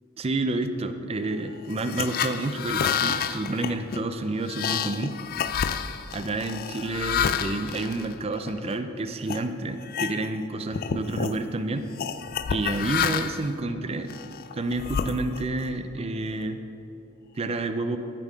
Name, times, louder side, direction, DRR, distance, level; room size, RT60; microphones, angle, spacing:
voice 1, 0.2-5.2 6.1-11.9 12.5-14.1 14.5-16.6 17.4-18.0, right 2 dB, 30° right, 9 dB, 0.4 m, -29 dB
sound 1, 1.7-8.7 9.2-9.4 9.8-10.5 10.7-11.4 12.0-13.5 14.1-15.6, left 7 dB, 45° left, 0.3 m, -29 dB
11.0 x 5.5 x 6.1 m, 2.9 s
head